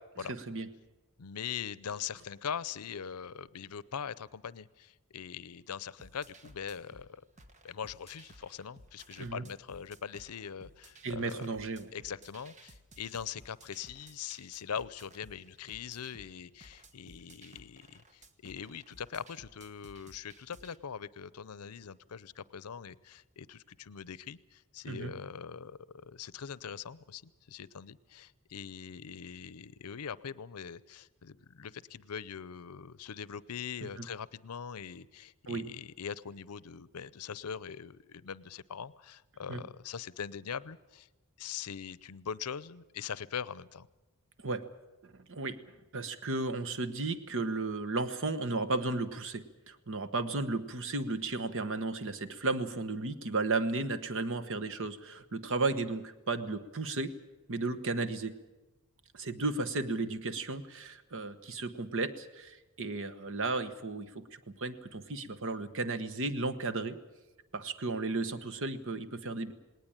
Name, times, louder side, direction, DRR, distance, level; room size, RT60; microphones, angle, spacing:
voice 1, 0.3-0.7 9.2-9.4 11.0-11.9 24.9-25.1 34.0-34.1 35.5-35.7 39.5-39.6 44.4-44.6 45.0-45.6 45.9-57.1 57.5-58.3 59.1-67.0 67.5-69.5, right 3 dB, 60° right, 11 dB, 1.2 m, -34 dB
voice 2, 1.2-7.2 7.6-11.5 11.9-41.1 41.4-43.9, left 7 dB, 90° left, 19 dB, 0.6 m, -42 dB
sound 1, 6.0-20.8, right 2 dB, 35° right, 1.2 m, -57 dB
19.0 x 19.0 x 8.9 m, 1.1 s
head